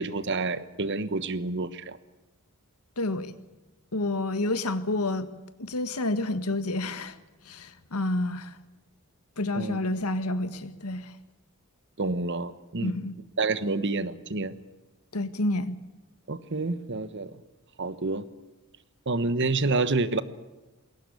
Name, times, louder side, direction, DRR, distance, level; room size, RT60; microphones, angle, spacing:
voice 1, 0.0-2.0 9.5-9.8 12.0-12.9 13.4-14.5 16.3-17.3 17.8-18.2 19.1-20.2, right 3 dB, 55° right, 15 dB, 1.2 m, -28 dB
voice 2, 3.0-3.3 3.9-5.3 5.6-7.2 7.4-8.6 9.4-11.1 12.8-13.2 15.1-15.8, left 2 dB, 85° left, 12 dB, 1.6 m, -29 dB
21.5 x 18.0 x 8.4 m, 1.1 s
head